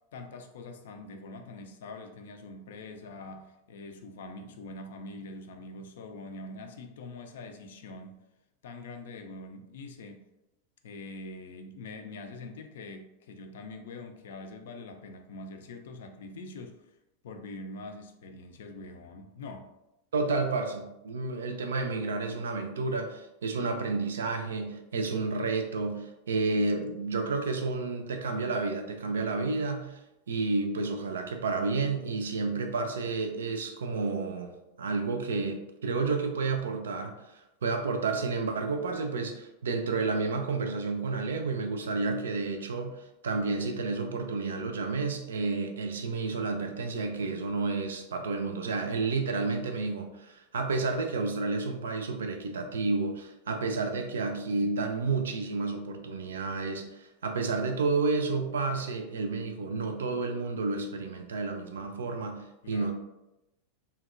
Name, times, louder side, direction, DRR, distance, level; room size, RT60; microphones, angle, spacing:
voice 1, 0.1-8.1 8.6-10.2 10.8-16.9 17.2-19.6 62.6-62.9, left 2 dB, 60° left, 5 dB, 0.3 m, -44 dB
voice 2, 20.1-30.0 30.3-34.5 34.8-62.9, right 3 dB, 65° right, 6 dB, 0.3 m, -31 dB
2.8 x 2.1 x 2.4 m, 0.91 s
figure-of-eight pair, 90°, 0 cm